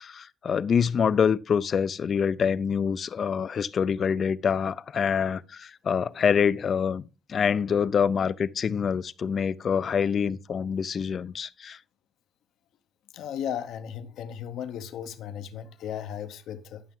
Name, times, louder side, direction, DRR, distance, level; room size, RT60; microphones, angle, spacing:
voice 1, 0.0-7.0 7.3-11.8, left 7 dB, 50° left, 0.4 m, -26 dB
voice 2, 13.1-16.8, left 9 dB, 80° left, 0.8 m, -35 dB
11.5 x 5.8 x 3.7 m
cardioid pair, 90°, 0 cm